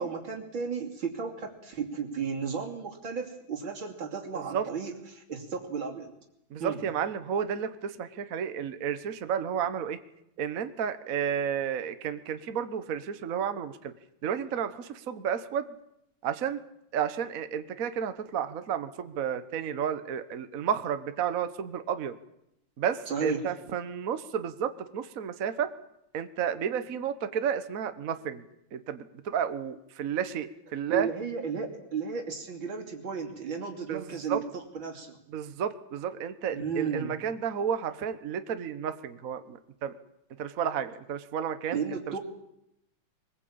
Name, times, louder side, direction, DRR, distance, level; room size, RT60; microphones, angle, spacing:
voice 1, 0.0-6.1 6.6-6.8 23.1-23.4 30.9-35.2 36.5-37.2 41.7-42.2, right 6 dB, 70° right, 2 dB, 3.6 m, -34 dB
voice 2, 4.3-4.7 6.5-10.0 10.4-13.9 14.2-15.6 16.2-16.6 16.9-22.2 22.8-25.7 26.1-28.4 28.7-31.1 33.9-34.4 35.3-39.9 40.4-41.8 42.1-42.2, right 8 dB, 50° right, 11 dB, 1.4 m, -32 dB
23.5 x 20.5 x 8.7 m, 0.80 s
omnidirectional pair, 2.2 m